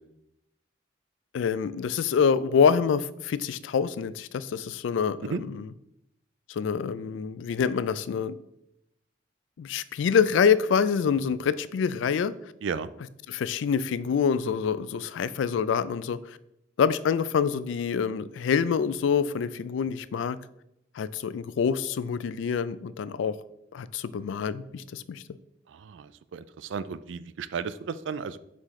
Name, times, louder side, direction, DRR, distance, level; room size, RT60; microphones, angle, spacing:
voice 1, 1.3-5.7 6.5-8.4 9.6-12.3 13.3-16.4 16.8-20.4 20.9-23.4 23.7-25.2, left 6 dB, 80° left, 0.3 m, -26 dB
voice 2, 12.6-12.9 25.7-28.4, right 6 dB, 75° right, 0.4 m, -34 dB
5.7 x 5.0 x 3.6 m
head